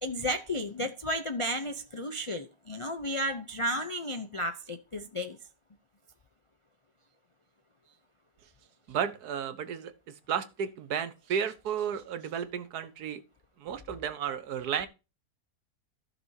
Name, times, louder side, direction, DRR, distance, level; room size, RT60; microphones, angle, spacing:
voice 1, 0.0-5.4, equal, 50° left, 0.3 m, -33 dB
voice 2, 8.9-9.9 10.3-13.2 13.6-14.9, right 8 dB, 80° right, 1.4 m, -33 dB
15.0 x 6.0 x 2.7 m
omnidirectional pair, 1.6 m